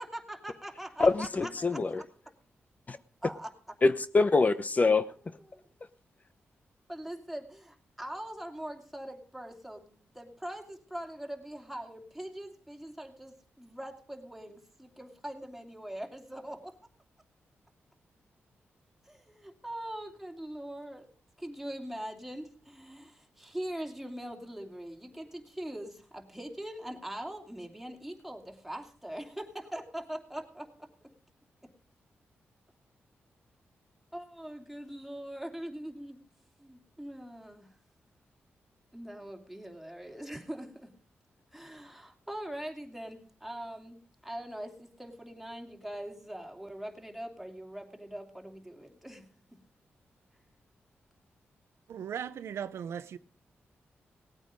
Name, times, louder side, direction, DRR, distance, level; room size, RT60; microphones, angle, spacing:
voice 1, 0.0-1.8 3.2-3.5 5.5-5.7 6.9-16.7 19.0-21.1 21.4-31.1 34.1-36.2 36.6-37.7 38.9-40.9 41.5-49.2, right 1 dB, ahead, 2.8 m, -42 dB
voice 2, 1.0-2.0 2.9-3.0 3.8-5.4, left 3 dB, 35° left, 0.7 m, -25 dB
voice 3, 51.9-53.2, right 8 dB, 85° right, 0.6 m, -37 dB
18.0 x 8.9 x 5.2 m
cardioid pair, 80°, 4 cm